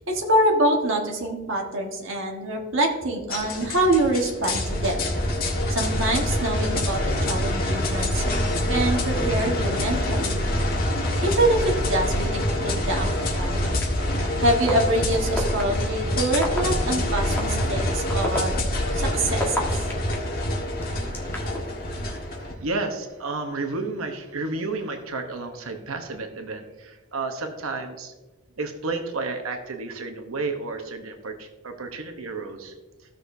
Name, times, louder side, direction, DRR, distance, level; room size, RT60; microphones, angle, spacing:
voice 1, 0.1-5.0 5.7-8.4 8.7-10.4 11.2-13.7 14.4-19.8, right 1 dB, 65° right, 0 dB, 1.4 m, -25 dB
sound 1, 3.3-22.5, left 1 dB, 45° left, 1.6 m, -26 dB
sound 2, 13.8-13.9 14.7-14.8 15.4-15.6 16.3-16.6 17.4-17.5 18.1-20.1 20.8-21.6, left 2 dB, 10° left, 1.4 m, -28 dB
voice 2, 22.1-28.1 28.6-32.7, right 3 dB, 85° right, 5 dB, 0.9 m, -32 dB
15.5 x 6.4 x 2.6 m, 1.2 s
head